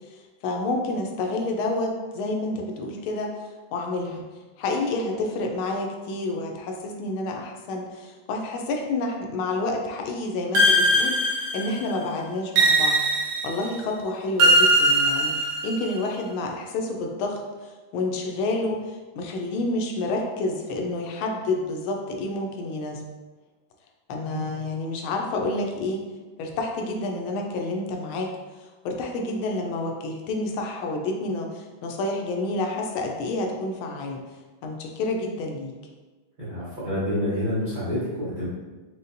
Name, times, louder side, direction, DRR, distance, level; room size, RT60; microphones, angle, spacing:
voice 1, 0.1-3.3 3.7-4.3 4.6-13.0 13.4-23.0 24.1-26.1 26.4-34.2 34.6-35.7, left 2 dB, 85° left, 1 dB, 1.4 m, -29 dB
sound 1, 10.6-11.9 12.6-13.7 14.4-15.9, right 1 dB, 85° right, 1.5 m, -20 dB
voice 2, 36.4-38.5, left 1 dB, 55° right, -10 dB, 0.5 m, -28 dB
5.3 x 2.1 x 2.5 m, 1.3 s
omnidirectional pair, 2.2 m